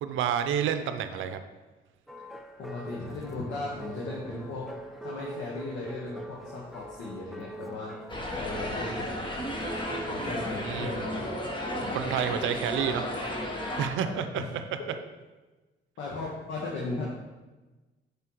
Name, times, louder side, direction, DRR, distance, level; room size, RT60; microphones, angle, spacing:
voice 1, 0.0-1.4 10.6-10.9 11.9-13.1 13.8-14.6, right 8 dB, 85° right, 9 dB, 0.5 m, -29 dB
sound 1, 2.1-11.2, right 1 dB, ahead, 0.4 m, -44 dB
voice 2, 2.6-4.7 5.0-8.0 8.3-9.2 10.1-11.4 11.7-12.0 13.7-14.5 14.8-14.9 16.0-17.1, left 2 dB, 75° left, -4 dB, 1.2 m, -37 dB
sound 2, 8.1-13.9, equal, 25° left, 1.3 m, -33 dB
7.5 x 5.5 x 3.0 m, 1.2 s
cardioid pair, 90°, 20 cm